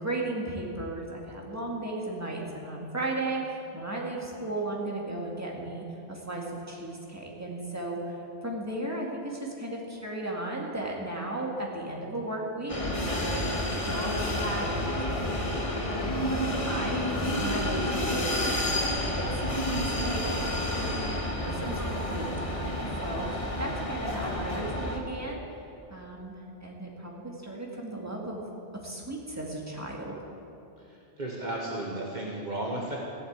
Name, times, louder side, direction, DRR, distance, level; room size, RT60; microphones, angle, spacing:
voice 1, 0.0-8.1 8.4-18.6 19.0-21.2 21.4-25.4 25.9-28.4 28.8-30.2, right 2 dB, 15° right, -2 dB, 2.2 m, -36 dB
sound 1, 12.7-25.0, left 1 dB, 30° left, 1.5 m, -30 dB
voice 2, 31.2-33.0, right 1 dB, 45° right, -2 dB, 1.5 m, -33 dB
15.5 x 8.5 x 8.2 m, 2.9 s
omnidirectional pair, 1.1 m